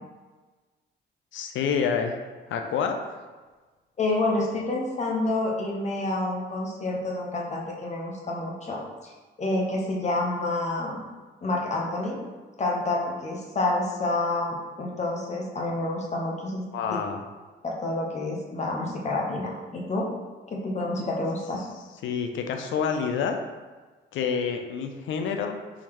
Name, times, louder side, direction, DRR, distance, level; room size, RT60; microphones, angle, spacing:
voice 1, 1.3-2.2 2.5-3.0 16.7-17.2 22.0-23.4 24.1-25.6, left 6 dB, 75° left, 5 dB, 0.5 m, -27 dB
voice 2, 4.0-9.1 9.4-11.0 11.4-12.2 12.6-16.7 17.6-20.1 20.5-21.6, left 2 dB, 35° left, -2 dB, 0.8 m, -28 dB
3.9 x 3.0 x 2.9 m, 1.3 s
cardioid pair, 90°, 20 cm